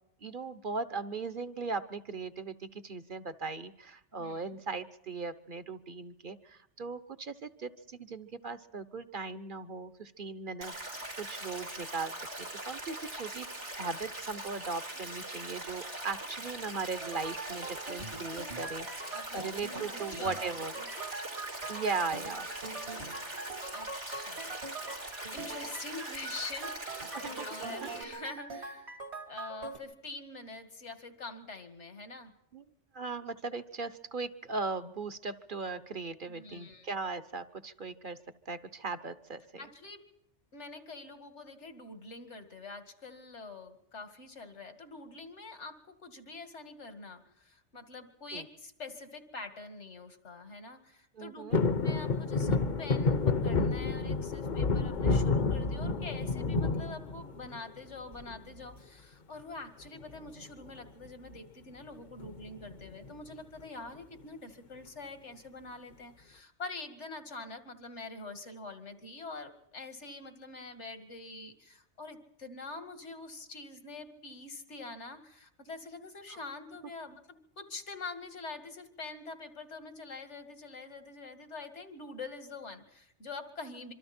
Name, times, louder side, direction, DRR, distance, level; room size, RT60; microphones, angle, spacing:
voice 1, 0.2-10.7 11.2-12.1 12.4-13.5 13.8-20.7 21.7-23.2 27.1-27.5 27.8-27.9 32.5-32.6 32.9-38.2 38.5-39.7 48.3-48.4 51.1-51.6 76.3-76.4, right 4 dB, 50° right, 12 dB, 1.1 m, -38 dB
Stream, 10.6-28.0, right 1 dB, 90° right, 5.0 m, -42 dB
sound 1, 17.0-29.8, right 3 dB, 70° right, 2.3 m, -43 dB
voice 2, 19.1-19.5 19.9-20.4 20.7-21.1 23.7-24.9 25.3-29.0 29.3-32.3 36.3-36.9 39.6-40.1 40.5-51.4 51.8-83.9, left 3 dB, 80° left, 7 dB, 2.5 m, -45 dB
sound 2, 51.5-57.7 58.1-58.7 60.0-60.4 60.7-60.8 61.1-61.4 62.2-63.1 63.6-63.7, left 3 dB, 45° left, 1.0 m, -29 dB
26.0 x 24.5 x 4.4 m, 0.77 s
omnidirectional pair, 1.2 m